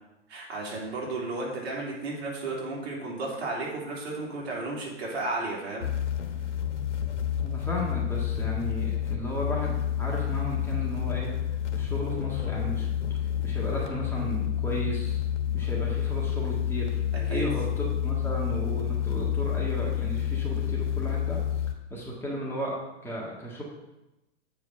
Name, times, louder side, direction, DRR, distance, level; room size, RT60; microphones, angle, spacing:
voice 1, 0.3-5.9 17.1-17.5, right 2 dB, 60° right, -4 dB, 3.3 m, -33 dB
sound 1, 5.8-21.7, left 10 dB, 75° left, 1.2 m, -29 dB
voice 2, 7.4-12.9 13.4-15.2 15.5-17.0 17.3-21.4 21.9-23.6, equal, 5° left, -4 dB, 1.6 m, -34 dB
8.2 x 4.9 x 5.5 m, 0.97 s
hypercardioid pair, 115°, 36 cm